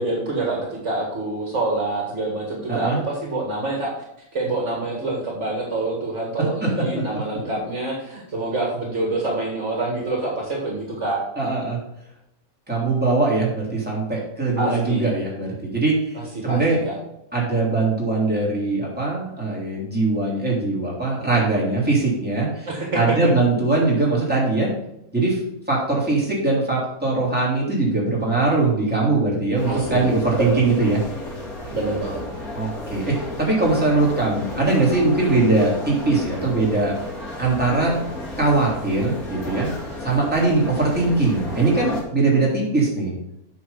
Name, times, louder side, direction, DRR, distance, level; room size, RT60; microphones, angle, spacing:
voice 1, 0.0-3.9 4.3-11.2 14.6-15.1 16.1-16.9 22.7-23.0 29.7-30.1 30.4-30.7 31.7-32.2, right 2 dB, 55° right, -1 dB, 2.1 m, -26 dB
voice 2, 2.7-3.0 6.6-6.7 6.9-7.6 11.4-11.8 12.7-16.2 16.4-16.8 17.3-22.7 22.9-24.7 25.1-25.4 25.7-31.0 32.5-36.9 37.4-38.0 38.4-39.7 40.0-43.2, right 3 dB, 5° right, -5 dB, 3.3 m, -21 dB
sound 1, 29.6-42.0, left 1 dB, 80° left, 2.9 m, -33 dB
8.5 x 5.7 x 5.7 m, 0.82 s
omnidirectional pair, 1.5 m